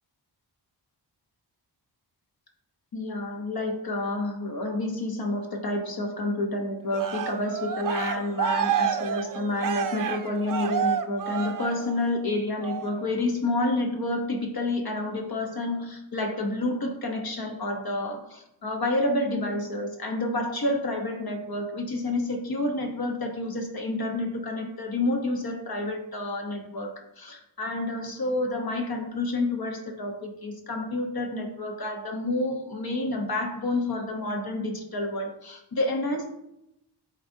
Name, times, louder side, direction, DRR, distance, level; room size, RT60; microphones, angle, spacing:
voice 1, 2.9-36.3, left 2 dB, 55° left, 2 dB, 0.9 m, -29 dB
Cheering, 6.9-12.2 12.6-13.0, right 8 dB, 50° right, 0.5 m, -29 dB
10.5 x 4.0 x 2.7 m, 0.85 s
wide cardioid pair, 115°, 44 cm